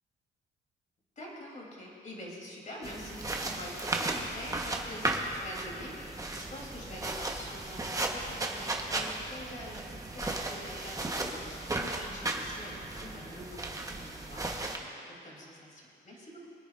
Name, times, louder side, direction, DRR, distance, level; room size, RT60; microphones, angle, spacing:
voice 1, 1.2-16.5, left 1 dB, 40° left, -3 dB, 3.4 m, -46 dB
sound 1, 2.8-14.8, right 2 dB, 15° right, 1.2 m, -35 dB
25.0 x 9.5 x 2.6 m, 2.5 s
cardioid pair, 90°, 20 cm